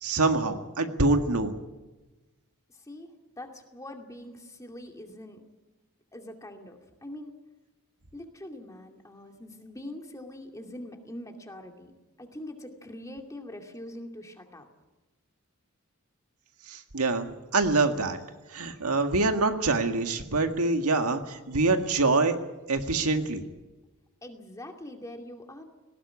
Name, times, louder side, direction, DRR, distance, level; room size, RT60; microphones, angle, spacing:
voice 1, 0.0-1.6 16.7-18.2 18.5-22.4 22.7-23.4, right 3 dB, 85° right, 6 dB, 1.9 m, -25 dB
voice 2, 3.4-5.4 6.1-7.3 8.1-11.9 12.2-14.7 24.2-25.6, left 1 dB, 15° left, 3 dB, 2.4 m, -43 dB
19.5 x 17.0 x 9.7 m, 1.1 s
head